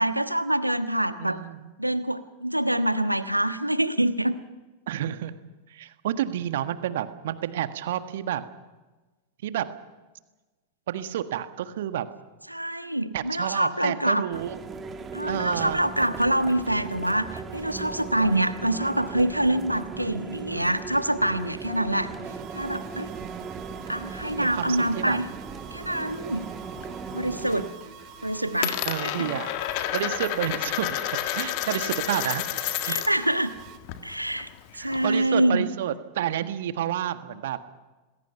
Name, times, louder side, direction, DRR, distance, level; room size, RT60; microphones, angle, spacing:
voice 1, 0.0-1.4 1.8-4.4 12.5-14.2 15.1-22.1 22.5-23.1 23.9-25.3 25.7-26.5 27.1-27.7 28.2-29.3 32.8-33.5 34.0-34.5 34.8-35.7, right 1 dB, 90° right, 11 dB, 1.3 m, -25 dB
voice 2, 1.2-1.7 4.9-5.3 5.7-8.4 9.4-9.7 10.9-12.1 13.1-14.6 15.3-15.8 24.4-25.2 28.8-29.5 29.9-32.4 32.9-33.0 34.7-37.6, right 11 dB, 55° right, 10 dB, 1.6 m, -30 dB
sound 1, 14.3-27.7, right 5 dB, 20° right, 2.0 m, -38 dB
sound 2, 22.2-33.8, right 9 dB, 40° right, 2.4 m, -47 dB
Coin (dropping), 25.8-26.9 27.2-27.7 28.0-33.3 33.6-35.3, left 13 dB, 45° left, 1.8 m, -31 dB
27.5 x 20.5 x 5.7 m, 1.2 s
figure-of-eight pair, 90°, 0 cm